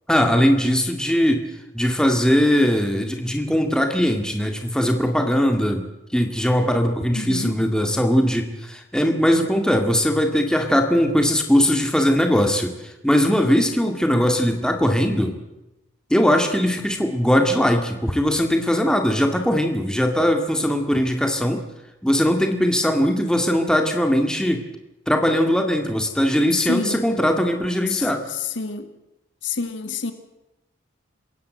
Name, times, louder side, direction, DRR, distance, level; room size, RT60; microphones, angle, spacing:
voice 1, 0.1-1.5 1.7-5.9 6.1-15.3 16.1-21.6 22.0-24.6 25.1-28.2, equal, 5° left, 4 dB, 2.1 m, -20 dB
voice 2, 7.1-7.5 26.5-27.0 27.9-28.9 29.4-30.1, left 4 dB, 65° left, 8 dB, 2.1 m, -28 dB
28.0 x 16.0 x 7.8 m, 0.96 s
head